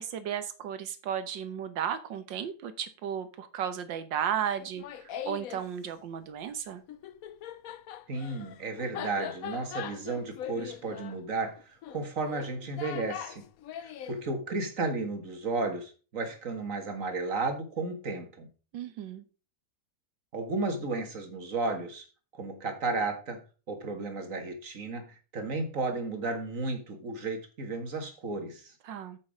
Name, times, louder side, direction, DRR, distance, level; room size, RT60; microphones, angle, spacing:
voice 1, 0.0-6.8 18.7-19.2 28.8-29.2, right 9 dB, 70° right, 11 dB, 1.7 m, -34 dB
Laughter, 4.6-5.7 6.9-14.2, left 10 dB, 65° left, 0.9 m, -41 dB
voice 2, 8.1-13.4 13.8-18.5 20.3-22.0 22.3-23.4 23.7-25.1 25.3-28.7, right 3 dB, 40° right, 5 dB, 2.0 m, -33 dB
8.8 x 6.5 x 4.9 m, 0.35 s
omnidirectional pair, 2.2 m